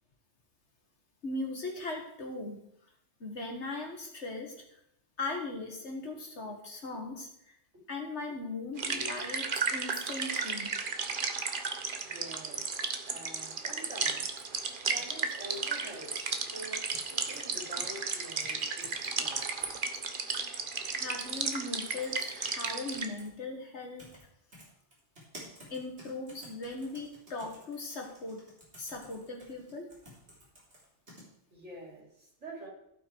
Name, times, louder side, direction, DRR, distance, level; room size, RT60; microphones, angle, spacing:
voice 1, 1.2-2.6 3.2-4.6 5.2-7.6 7.9-10.7 20.9-24.1 25.7-28.4 28.8-29.9, left 2 dB, 75° left, 2 dB, 2.2 m, -39 dB
sound 1, 8.8-23.1, right 5 dB, 50° right, 1.1 m, -34 dB
voice 2, 12.0-12.6 13.0-19.7 31.5-32.7, right 1 dB, 90° right, -2 dB, 3.8 m, -47 dB
sound 2, 13.8-16.3 16.7-17.4 17.8-17.9 18.4-19.1 19.4-20.4 21.2-21.5 21.8-23.3 24.0-24.2 24.5-31.2, equal, 70° right, 4.0 m, -54 dB
16.0 x 5.8 x 4.6 m, 0.75 s
omnidirectional pair, 1.2 m